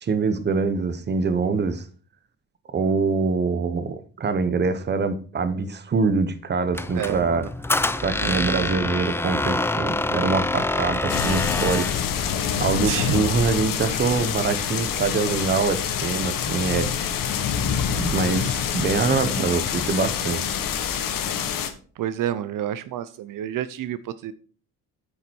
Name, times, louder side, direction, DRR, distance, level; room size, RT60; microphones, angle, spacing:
voice 1, 0.0-1.9 2.7-7.5 8.0-11.9 12.2-16.9 17.9-20.4, right 4 dB, 30° right, 1.0 m, -24 dB
Squeak, 6.7-12.0, left 2 dB, 5° left, 0.4 m, -26 dB
voice 2, 6.9-7.5 8.2-8.7 12.8-13.2 22.0-24.3, right 11 dB, 65° right, 0.7 m, -29 dB
sound 1, 11.1-21.7, left 8 dB, 70° left, 1.5 m, -26 dB
8.9 x 6.9 x 4.6 m
cardioid pair, 145°, 35 cm